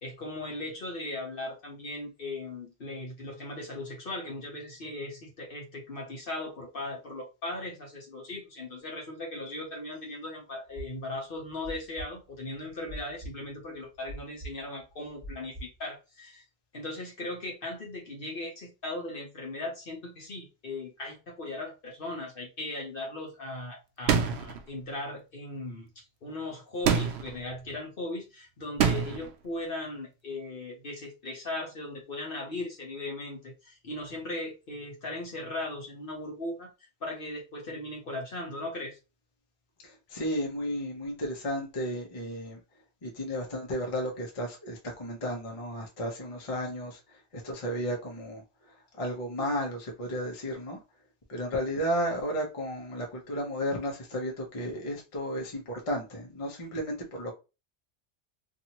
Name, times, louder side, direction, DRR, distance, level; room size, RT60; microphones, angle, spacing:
voice 1, 0.0-16.4 16.7-25.9 26.2-36.7 37.0-39.0, left 2 dB, 55° left, 1.0 m, -38 dB
sound 1, 10.7-15.8, right 1 dB, 15° right, 0.9 m, -43 dB
sound 2, 24.1-24.6 26.9-27.4 28.8-29.3, right 7 dB, 70° right, 0.8 m, -25 dB
voice 2, 39.8-42.6 43.0-50.8 51.3-57.3, equal, 30° left, 0.8 m, -33 dB
2.7 x 2.6 x 2.9 m
omnidirectional pair, 1.2 m